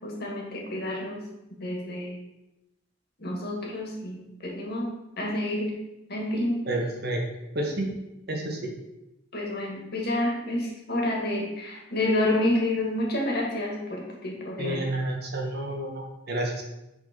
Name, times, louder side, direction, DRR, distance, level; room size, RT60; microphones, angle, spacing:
voice 1, 0.0-1.2 1.6-2.2 3.2-5.8 6.1-6.7 9.3-14.9, left 1 dB, 50° left, -1 dB, 1.9 m, -29 dB
voice 2, 6.7-7.2 7.5-8.0 8.3-8.7 14.6-16.6, right 1 dB, 50° right, 1 dB, 1.4 m, -30 dB
8.5 x 4.1 x 5.3 m, 0.93 s
head